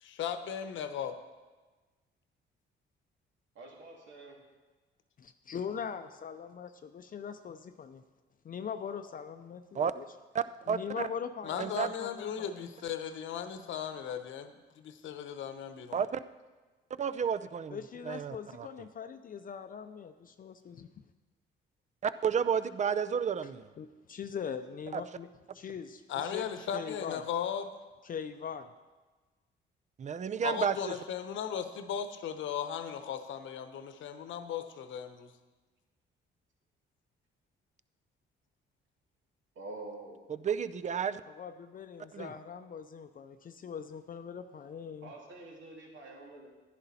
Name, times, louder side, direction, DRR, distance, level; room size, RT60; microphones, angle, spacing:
voice 1, 0.0-1.1 11.4-16.0 26.1-27.7 30.4-35.3, left 8 dB, 75° left, 9 dB, 0.9 m, -37 dB
voice 2, 3.5-4.4 39.5-40.2 45.0-46.5, right 2 dB, 70° right, -1 dB, 2.7 m, -46 dB
voice 3, 5.2-8.0 8.4-10.1 10.7-12.7 17.7-21.0 23.8-26.5 26.7-27.2 28.0-28.7 41.3-45.1, left 7 dB, 45° left, 8 dB, 0.6 m, -41 dB
voice 4, 10.3-10.8 11.6-11.9 15.9-16.2 17.0-17.8 18.1-18.7 22.0-23.6 24.9-25.0 30.0-30.7 40.4-41.2 42.1-42.3, right 7 dB, 35° right, 14 dB, 0.5 m, -31 dB
11.0 x 10.5 x 4.2 m, 1.3 s
cardioid pair, 90°, 20 cm